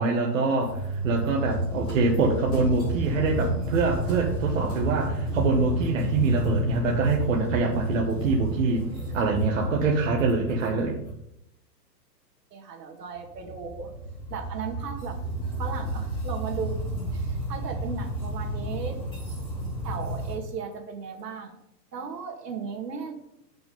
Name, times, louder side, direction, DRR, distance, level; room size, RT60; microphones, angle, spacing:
voice 1, 0.0-8.8 9.1-11.0, right 3 dB, 50° right, 0 dB, 1.2 m, -25 dB
sound 1, 0.6-11.2 13.1-20.3, right 1 dB, 10° left, 3.3 m, -31 dB
voice 2, 12.5-13.9 14.3-15.2 15.6-16.8 17.1-19.0 19.8-21.6 21.9-23.1, right 6 dB, 70° right, 3 dB, 2.0 m, -36 dB
7.2 x 5.9 x 5.3 m, 0.78 s
hypercardioid pair, 170°, 49 cm